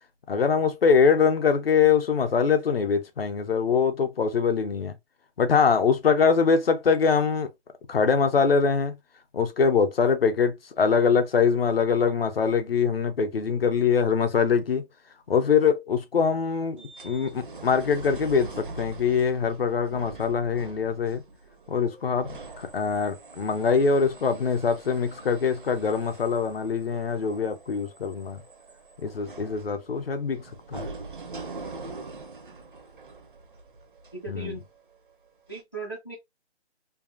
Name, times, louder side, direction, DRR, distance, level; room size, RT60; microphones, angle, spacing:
voice 1, 0.3-4.9 5.4-7.5 7.9-8.9 9.3-14.8 15.3-16.8 17.0-21.2 21.7-28.4 29.0-30.4 30.7-30.9 34.3-34.6, left 6 dB, 60° left, 0.6 m, -23 dB
sound 1, 16.8-34.9 35.5-35.6, right 3 dB, 50° right, 0.5 m, -43 dB
voice 2, 34.1-34.6 35.5-36.1, right 3 dB, 20° left, 0.6 m, -37 dB
2.7 x 2.4 x 2.4 m
hypercardioid pair, 175°, 34 cm